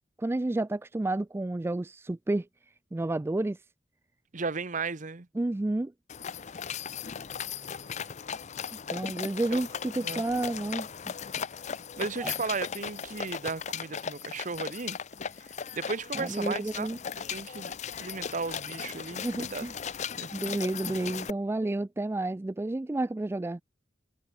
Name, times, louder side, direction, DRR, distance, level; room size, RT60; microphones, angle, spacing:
voice 1, 0.2-2.5 2.9-3.6 5.3-5.9 8.9-11.1 12.2-12.3 16.1-17.0 19.2-19.7 20.3-23.6, right 2 dB, 15° right, 0.3 m, -30 dB
voice 2, 4.3-5.3 9.5-9.6 10.0-10.2 12.0-15.0 15.7-16.9 17.3-19.6 20.2-20.3, right 4 dB, 45° right, 1.0 m, -35 dB
sound 1, 6.1-21.3, left 7 dB, 40° left, 0.6 m, -37 dB
head